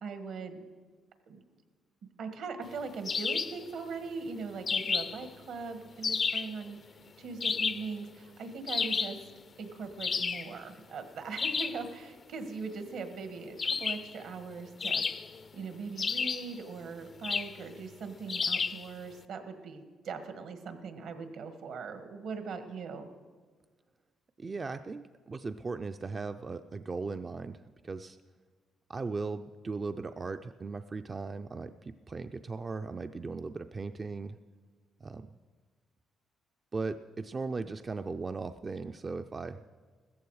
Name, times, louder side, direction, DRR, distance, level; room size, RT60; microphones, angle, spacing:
voice 1, 0.0-0.6 1.3-1.4 2.2-6.8 7.2-9.2 9.6-15.0 15.5-23.1, right 4 dB, 75° right, 8 dB, 1.5 m, -40 dB
sound 1, 3.1-3.6 4.7-5.3 6.0-6.6 7.4-7.9 8.7-9.2 10.0-10.5 11.4-11.8 13.6-14.1 14.8-15.5 16.0-16.6 17.2-17.6 18.3-18.8, left 5 dB, 40° left, 0.5 m, -31 dB
voice 2, 24.4-28.2 28.9-34.4 35.0-35.3 36.7-39.6, right 4 dB, 30° right, 8 dB, 0.4 m, -38 dB
15.0 x 14.0 x 4.8 m, 1.5 s
cardioid pair, 90°, 0 cm